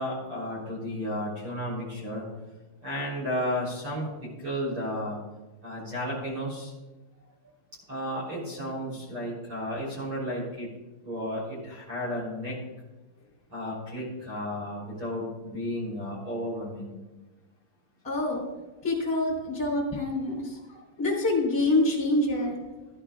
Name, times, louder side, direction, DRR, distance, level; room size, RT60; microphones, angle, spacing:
voice 1, 0.0-2.2 2.8-4.1 4.4-5.2 5.6-6.7 7.9-10.7 11.0-12.6 13.5-16.9, equal, 30° right, -5 dB, 3.9 m, -33 dB
voice 2, 18.0-18.4 18.8-22.5, left 2 dB, 5° left, -4 dB, 3.2 m, -26 dB
16.5 x 11.0 x 2.5 m, 1.1 s
omnidirectional pair, 5.6 m